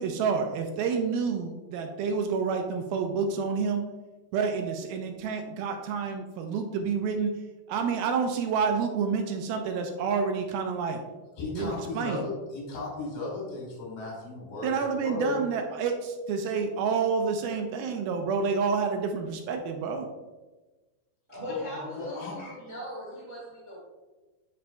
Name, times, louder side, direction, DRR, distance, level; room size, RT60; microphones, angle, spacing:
voice 1, 0.0-3.8 4.3-7.3 7.7-11.0 11.5-12.2 14.6-20.1, right 5 dB, 85° right, 4 dB, 2.4 m, -28 dB
voice 2, 11.4-15.4 21.5-22.4, left 3 dB, 65° left, -3 dB, 3.8 m, -35 dB
voice 3, 21.3-23.8, equal, 25° right, -7 dB, 1.4 m, -39 dB
9.3 x 5.3 x 2.3 m, 1.2 s
omnidirectional pair, 4.5 m